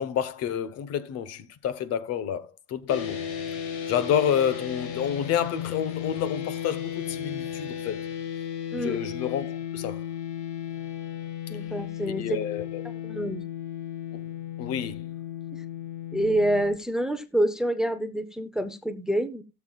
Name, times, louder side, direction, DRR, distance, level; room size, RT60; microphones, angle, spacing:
voice 1, 0.0-3.2 3.9-8.1 8.7-10.0 12.1-12.8 14.6-15.1, left 9 dB, 50° left, 1.1 m, -29 dB
sound 1, 2.9-16.6, left 9 dB, 85° left, 3.3 m, -35 dB
voice 2, 11.5-12.4 13.0-13.4 15.5-15.6 16.1-19.4, right 1 dB, ahead, 0.7 m, -27 dB
18.5 x 7.3 x 2.4 m
cardioid pair, 140°, 32 cm